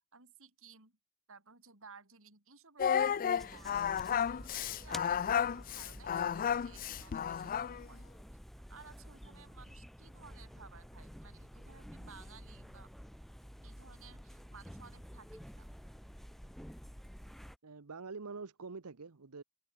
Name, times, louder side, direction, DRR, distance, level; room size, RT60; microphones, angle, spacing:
voice 1, 0.1-1.0 1.3-8.1 8.7-12.9 13.6-15.7, right 5 dB, 65° right, 5.7 m, -57 dB
Singing, 2.8-7.9, left 8 dB, 40° left, 0.3 m, -32 dB
sound 1, 3.4-17.6, equal, ahead, 1.4 m, -51 dB
voice 2, 17.6-19.4, right 4 dB, 85° right, 0.9 m, -45 dB
head